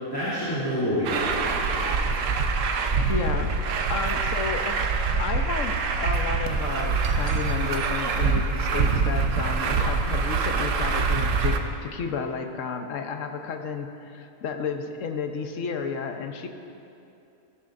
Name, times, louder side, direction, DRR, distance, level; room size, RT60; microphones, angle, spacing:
voice 1, 0.0-2.0, equal, 15° left, -12 dB, 2.6 m, -28 dB
Truck, 1.0-11.6, right 4 dB, 70° right, 1.1 m, -25 dB
voice 2, 3.1-4.9 5.2-16.5, left 5 dB, 65° left, 6 dB, 1.1 m, -32 dB
15.5 x 13.0 x 2.6 m, 2.7 s
omnidirectional pair, 1.5 m